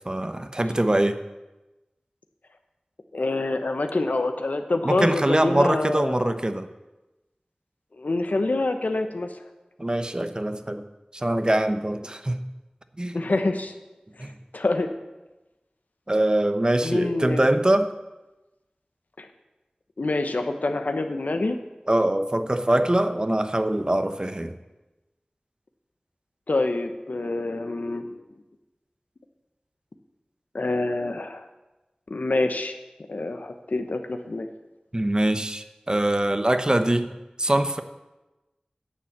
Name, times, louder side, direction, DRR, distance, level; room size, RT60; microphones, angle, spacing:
voice 1, 0.1-1.2 4.8-6.7 9.8-10.8 11.1-12.4 13.0-13.2 14.2-14.3 16.1-17.9 21.9-24.6 34.9-37.8, right 1 dB, 30° right, 9 dB, 0.8 m, -23 dB
voice 2, 3.1-6.3 8.0-9.3 13.1-13.7 14.2-14.3 14.5-14.9 16.8-17.4 19.2-19.3 20.0-21.6 26.5-28.2 30.5-31.4 32.1-32.7 33.1-34.5, left 2 dB, 80° left, 7 dB, 0.9 m, -26 dB
10.0 x 7.0 x 7.4 m, 1.1 s
wide cardioid pair, 45°, 3 cm